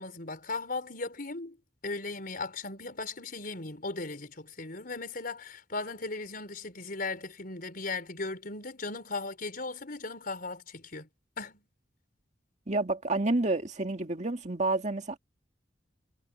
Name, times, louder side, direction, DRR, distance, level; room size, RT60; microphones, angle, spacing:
voice 1, 0.0-1.6 1.8-11.1 11.4-11.6, left 3 dB, 50° left, 4.9 m, -37 dB
voice 2, 12.7-15.2, right 2 dB, 40° right, 2.0 m, -29 dB
head